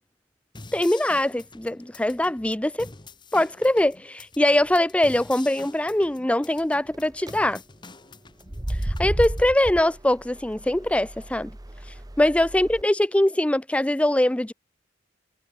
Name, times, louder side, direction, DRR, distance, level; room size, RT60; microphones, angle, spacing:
sound 1, 0.5-9.5, left 3 dB, 25° left, 1.3 m, -46 dB
voice 1, 0.7-2.9 3.3-7.6 9.0-11.5 12.2-14.5, left 1 dB, 5° left, 0.5 m, -22 dB
sound 2, 6.9-7.3 8.4-12.8, right 1 dB, 20° right, 1.1 m, -32 dB
head